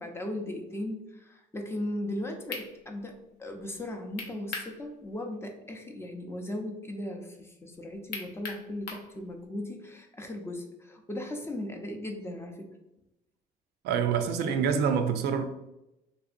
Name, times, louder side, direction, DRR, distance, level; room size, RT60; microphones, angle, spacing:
voice 1, 0.0-12.7, left 1 dB, 15° left, 0.5 m, -37 dB
sound 1, 2.1-2.2 2.5-2.7 4.2-4.7 5.1-5.2 8.1-9.1, left 3 dB, 75° left, 0.6 m, -37 dB
voice 2, 13.8-15.4, right 7 dB, 80° right, 0.4 m, -26 dB
3.2 x 2.6 x 2.5 m
cardioid pair, 110°, 17 cm